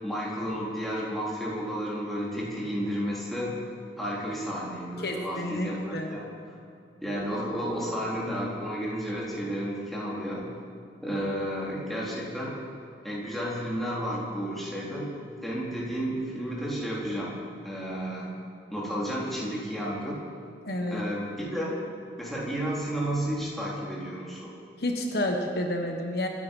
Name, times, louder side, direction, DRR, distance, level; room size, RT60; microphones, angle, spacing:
voice 1, 0.0-3.6 4.0-6.6 7.0-10.5 11.0-12.6 13.0-15.1 15.4-17.3 17.6-18.3 18.7-20.2 20.9-21.7 22.2-24.5, equal, ahead, -6 dB, 3.7 m, -32 dB
voice 2, 5.0-6.2 20.7-21.0 24.8-26.3, left 1 dB, 60° left, 2 dB, 1.4 m, -30 dB
25.5 x 10.0 x 5.5 m, 2.4 s
head